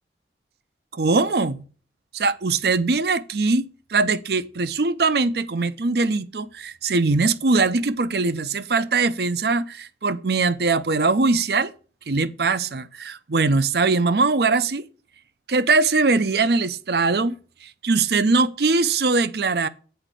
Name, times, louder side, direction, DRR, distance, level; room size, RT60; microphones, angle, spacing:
voice 1, 0.9-1.6 2.1-11.7 12.1-14.9 15.5-19.7, right 3 dB, 65° right, 0.6 m, -21 dB
7.9 x 4.9 x 6.7 m
head